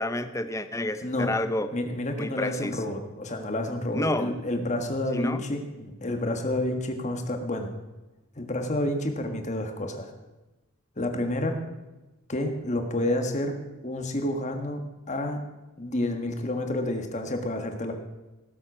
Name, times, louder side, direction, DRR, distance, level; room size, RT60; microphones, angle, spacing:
voice 1, 0.0-1.7 2.2-2.8 3.9-4.4 5.1-5.4, left 1 dB, 15° left, 10 dB, 0.6 m, -29 dB
voice 2, 1.0-1.3 1.7-7.7 8.4-10.1 11.0-11.6 12.3-13.5 13.8-14.8 15.1-15.4 15.8-17.9, left 1 dB, 35° left, 5 dB, 1.5 m, -29 dB
17.5 x 7.8 x 6.1 m, 1.1 s
head